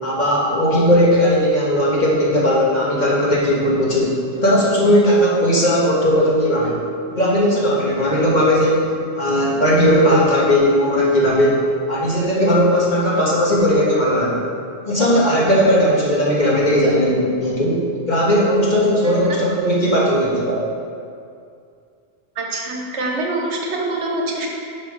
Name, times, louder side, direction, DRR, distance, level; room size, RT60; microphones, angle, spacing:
voice 1, 0.0-6.8 7.1-14.5 14.9-17.8 18.1-20.6, equal, 40° left, -5 dB, 1.6 m, -17 dB
voice 2, 19.0-19.4 22.4-24.5, right 2 dB, 70° right, 0 dB, 1.3 m, -25 dB
7.7 x 5.6 x 5.1 m, 2.4 s
omnidirectional pair, 1.2 m